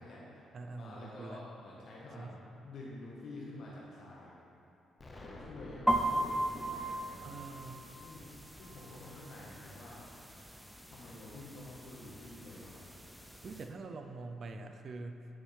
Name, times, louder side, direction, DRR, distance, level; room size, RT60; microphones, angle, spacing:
voice 1, 0.0-0.4 0.7-4.3 5.1-7.4 8.0-8.3 8.6-10.0 10.9-12.9, left 2 dB, 65° left, -6 dB, 1.4 m, -49 dB
voice 2, 0.5-1.4 2.1-2.4 7.2-7.9 13.4-15.3, right 3 dB, 50° right, 5 dB, 0.6 m, -45 dB
Explosion, 5.0-9.8, left 1 dB, 25° left, 0.9 m, -53 dB
sound 1, 5.9-13.7, right 1 dB, ahead, 0.5 m, -38 dB
9.5 x 6.3 x 3.5 m, 2.8 s
cardioid pair, 90°, 0 cm